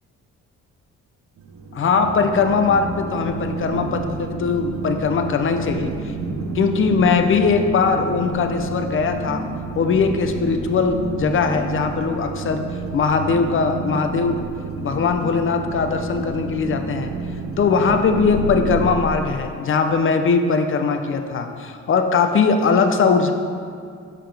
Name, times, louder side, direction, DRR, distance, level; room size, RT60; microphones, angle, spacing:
sound 1, 1.4-19.0, right 3 dB, 70° right, 1.0 m, -30 dB
voice 1, 1.7-6.1 6.5-9.4 9.7-12.6 12.9-14.4 14.8-17.1 17.6-23.3, left 5 dB, 45° left, 6 dB, 0.6 m, -20 dB
7.4 x 5.7 x 3.4 m, 2.3 s
cardioid pair, 90°, 30 cm